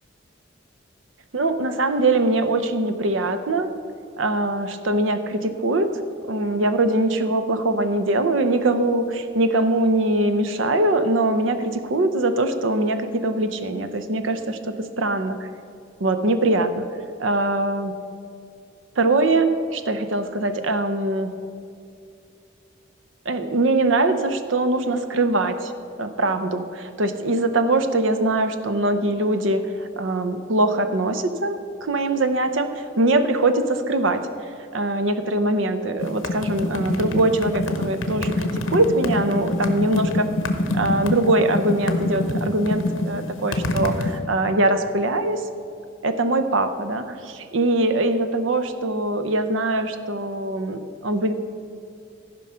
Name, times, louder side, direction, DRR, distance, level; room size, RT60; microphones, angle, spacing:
voice 1, 1.3-3.7 4.2-5.9 6.3-15.5 16.0-16.9 17.2-17.9 19.0-21.3 23.3-25.7 26.0-29.7 30.0-34.3 34.7-40.3 40.7-45.4 46.0-51.3, right 2 dB, 75° right, 9 dB, 0.7 m, -22 dB
sound 1, 36.0-44.2, left 2 dB, 75° left, 0.9 m, -25 dB
14.0 x 5.3 x 5.6 m, 2.5 s
head